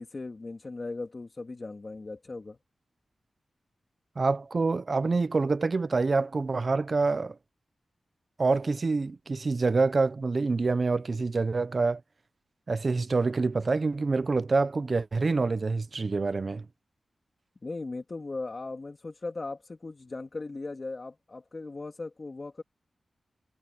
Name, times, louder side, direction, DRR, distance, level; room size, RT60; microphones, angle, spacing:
voice 1, 0.0-2.6 17.6-22.6, left 3 dB, 40° left, 2.7 m, -38 dB
voice 2, 4.2-7.4 8.4-12.0 12.7-16.7, right 3 dB, 45° right, 0.8 m, -26 dB
wide cardioid pair, 80°, 0 cm